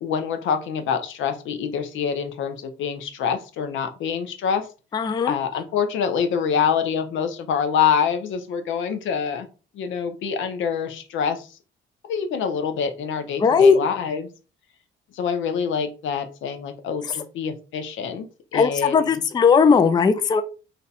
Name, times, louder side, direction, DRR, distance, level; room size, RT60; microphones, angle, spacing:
voice 1, 0.0-4.7 5.2-9.5 9.7-11.5 12.1-14.3 15.1-18.3 18.5-19.2, left 7 dB, 75° left, 8 dB, 0.6 m, -26 dB
voice 2, 4.9-5.3 13.4-13.8 18.5-20.4, left 5 dB, 20° left, 10 dB, 0.3 m, -17 dB
2.6 x 2.1 x 4.0 m, 0.34 s
cardioid pair, 90°, 20 cm